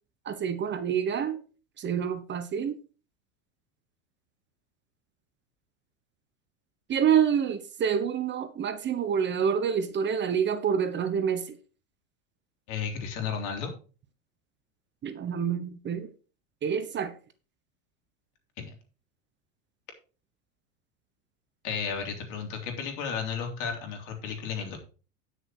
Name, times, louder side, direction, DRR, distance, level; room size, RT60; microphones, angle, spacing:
voice 1, 0.3-1.4 1.8-2.8 6.9-11.6 15.0-16.1 16.6-17.1, right 7 dB, 30° right, 1.1 m, -27 dB
voice 2, 12.7-13.7 18.6-18.7 21.6-24.8, left 6 dB, 55° left, 3.4 m, -33 dB
10.0 x 6.6 x 4.5 m
hypercardioid pair, 95°, 37 cm